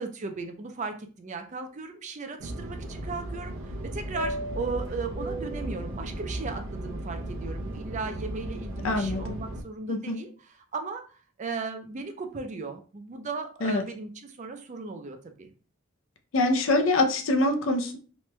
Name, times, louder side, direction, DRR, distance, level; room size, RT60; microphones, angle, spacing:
voice 1, 0.0-15.5, right 4 dB, 35° right, 6 dB, 0.4 m, -36 dB
Fixed-wing aircraft airplane, 2.4-9.6, right 1 dB, 90° right, 0.7 m, -35 dB
voice 2, 8.8-9.2 9.9-10.2 13.6-13.8 16.3-18.0, left 2 dB, 70° left, 6 dB, 0.5 m, -24 dB
3.1 x 2.2 x 3.0 m, 0.36 s
head